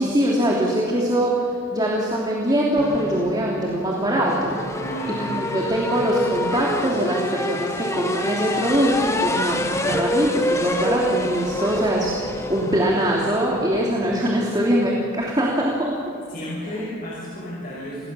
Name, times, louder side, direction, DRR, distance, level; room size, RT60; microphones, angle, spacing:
voice 1, 0.0-1.3 1.7-4.6 5.3-16.0, right 1 dB, 20° right, -3 dB, 3.0 m, -22 dB
sound 1, 2.8-15.3, left 1 dB, 15° left, 1.5 m, -28 dB
voice 2, 4.8-5.3 16.3-18.1, equal, 45° left, -5 dB, 6.0 m, -32 dB
27.5 x 19.5 x 7.1 m, 2.6 s
head